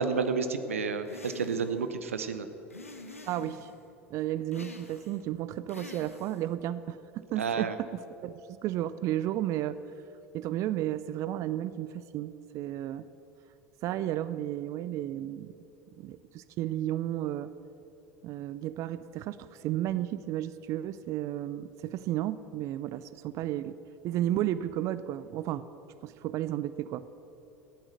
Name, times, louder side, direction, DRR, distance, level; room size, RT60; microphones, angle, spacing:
voice 1, 0.0-2.5 7.4-7.7, right 5 dB, 75° right, 10 dB, 0.8 m, -30 dB
sound 1, 1.1-1.8 2.7-3.8 4.5-5.2 5.7-6.5, left 3 dB, 85° left, 1.0 m, -47 dB
voice 2, 3.3-3.7 4.1-9.8 10.3-13.1 13.8-15.5 16.0-17.5 18.2-23.8 24.0-25.7 26.0-27.0, right 13 dB, 45° right, 15 dB, 0.5 m, -33 dB
14.5 x 8.8 x 7.9 m, 2.8 s
figure-of-eight pair, 70°, 7 cm